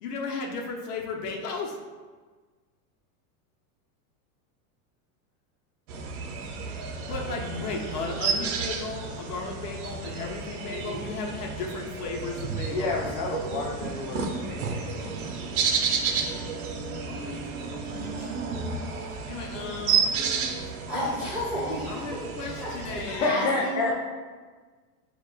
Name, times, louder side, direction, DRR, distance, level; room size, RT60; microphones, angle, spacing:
voice 1, 0.0-1.8 7.0-12.9 17.1-18.6 19.0-21.2 21.9-23.4, left 4 dB, 90° left, 0 dB, 0.9 m, -36 dB
sound 1, 5.9-23.2, right 5 dB, 75° right, 0.7 m, -31 dB
voice 2, 12.7-15.2 23.1-23.9, left 3 dB, 45° left, -2 dB, 0.5 m, -29 dB
voice 3, 20.9-21.9 22.6-23.0 23.2-23.9, equal, 5° right, -9 dB, 1.2 m, -31 dB
6.8 x 2.5 x 2.4 m, 1.4 s
supercardioid pair, 165°, 45 cm